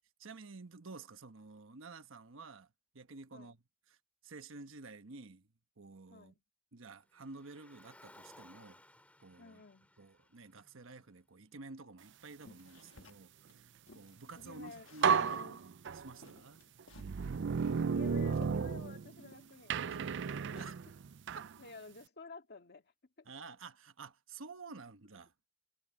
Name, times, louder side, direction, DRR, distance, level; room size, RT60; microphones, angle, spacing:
voice 1, 0.2-2.7 2.9-3.6 3.9-4.0 4.2-5.5 5.8-6.3 6.7-8.8 9.2-9.6 10.0-16.6 20.5-20.8 21.3-21.5 23.3-25.3, right 3 dB, 80° right, 1.2 m, -51 dB
voice 2, 6.1-6.4 9.4-9.9 14.4-15.6 17.8-20.5 21.6-23.3, left 4 dB, 55° left, 2.1 m, -53 dB
Car, 7.1-11.5, left 1 dB, 5° left, 2.9 m, -61 dB
sound 1, 12.4-14.2 14.7-15.6 15.9-16.0 16.2-17.2 17.7-19.6 19.9-21.0, left 3 dB, 85° left, 1.4 m, -57 dB
sound 2, 14.5-14.6 15.0-16.3 16.9-19.3 19.7-21.5, right 6 dB, 65° right, 0.4 m, -33 dB
head